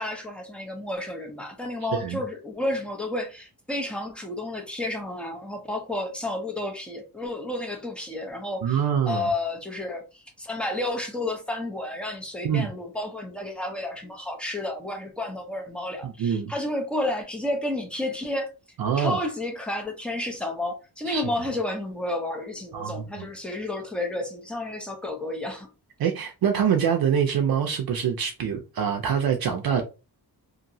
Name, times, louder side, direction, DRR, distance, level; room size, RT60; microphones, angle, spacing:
voice 1, 0.0-18.5 19.0-25.7, left 1 dB, 5° left, 0.6 m, -31 dB
voice 2, 8.6-9.2 12.4-12.7 16.0-16.5 18.8-19.2 21.1-21.2 22.7-23.2 26.0-29.8, right 8 dB, 60° right, 0.5 m, -25 dB
2.8 x 2.6 x 2.7 m
wide cardioid pair, 145°, 41 cm